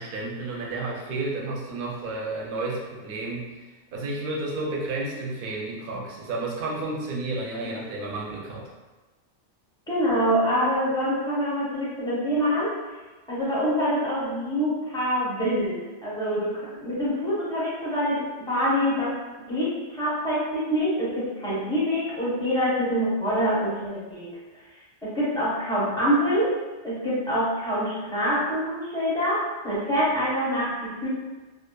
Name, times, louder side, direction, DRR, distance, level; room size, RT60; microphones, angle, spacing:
voice 1, 0.0-8.7, right 2 dB, 60° right, -2 dB, 0.6 m, -31 dB
voice 2, 9.9-12.7 13.3-19.1 19.5-24.3 25.0-26.5 26.8-31.1, equal, 5° left, -9 dB, 0.6 m, -25 dB
2.7 x 2.1 x 2.2 m, 1.2 s
omnidirectional pair, 1.2 m